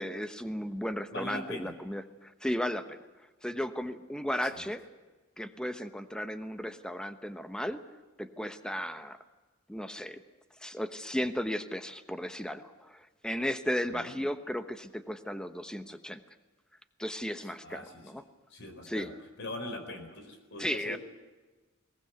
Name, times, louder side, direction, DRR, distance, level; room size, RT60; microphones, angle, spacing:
voice 1, 0.0-3.0 3.4-4.8 5.4-7.8 8.2-9.2 9.7-10.2 10.6-16.2 17.0-18.2 18.9-19.1 20.6-21.0, equal, 5° left, 9 dB, 1.1 m, -35 dB
voice 2, 1.1-1.8 4.4-4.7 13.9-14.1 17.6-18.2 18.5-19.1 19.4-21.0, left 1 dB, 60° left, 7 dB, 4.3 m, -41 dB
21.5 x 19.5 x 8.2 m, 1.3 s
head